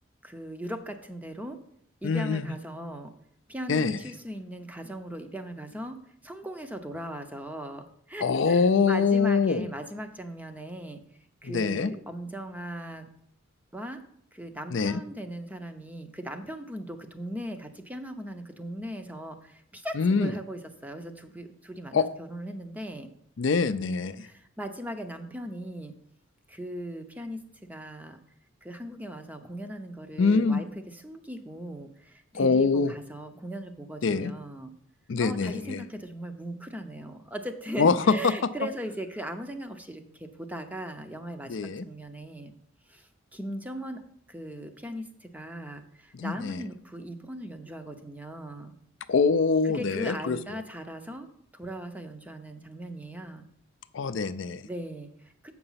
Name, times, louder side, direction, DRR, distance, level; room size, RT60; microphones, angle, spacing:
voice 1, 0.2-1.6 2.0-3.1 3.5-11.0 11.4-13.1 13.7-14.0 14.3-23.1 24.2-25.9 26.5-28.2 28.6-34.7 35.2-42.5 42.9-44.0 44.3-48.7 49.6-51.3 51.5-53.5 54.6-55.5, right 1 dB, 10° right, 7 dB, 0.6 m, -39 dB
voice 2, 2.0-2.5 3.7-4.0 8.2-9.7 11.4-11.9 14.7-15.0 20.0-20.3 21.9-22.0 23.4-24.3 30.2-30.6 32.3-32.9 34.0-34.3 35.1-35.8 37.8-38.1 41.5-41.8 46.1-46.6 49.1-50.4 53.9-54.6, left 4 dB, 65° left, 12 dB, 0.4 m, -24 dB
7.8 x 6.0 x 5.6 m, 0.69 s
head